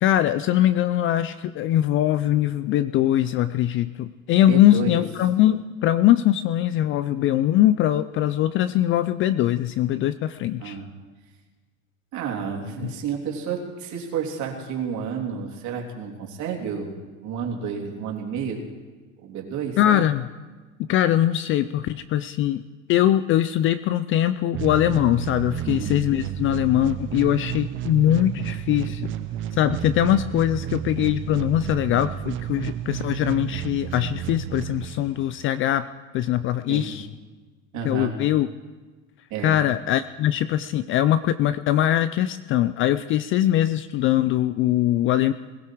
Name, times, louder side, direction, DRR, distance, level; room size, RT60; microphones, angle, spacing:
voice 1, 0.0-10.8 12.8-12.9 19.8-20.3 20.9-22.6 22.9-29.1 29.5-35.9 36.1-37.1 37.8-38.5 39.4-45.3, left 12 dB, 35° left, 14 dB, 0.4 m, -22 dB
voice 2, 4.4-5.0 10.6-10.9 12.1-16.9 17.2-18.6 19.2-20.1 25.6-25.9 36.7-36.9 37.7-38.1 39.3-39.6, right 6 dB, 45° right, 0 dB, 3.2 m, -30 dB
sound 1, 24.5-35.5, right 10 dB, 30° right, 0.6 m, -31 dB
21.0 x 13.5 x 4.6 m, 1.3 s
supercardioid pair, 130°, 39 cm